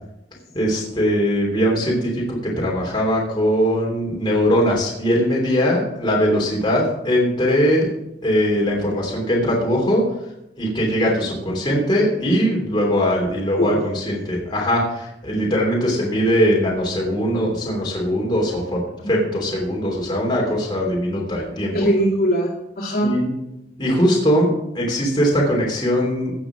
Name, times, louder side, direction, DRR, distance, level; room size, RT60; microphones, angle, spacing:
voice 1, 0.5-7.9 8.2-10.0 10.6-18.8 19.1-21.7 22.8-23.3 23.8-24.5 24.7-26.3, equal, 25° left, -3 dB, 3.1 m, -20 dB
voice 2, 21.7-23.2, equal, 60° left, -2 dB, 2.4 m, -21 dB
17.0 x 6.1 x 6.1 m, 0.87 s
head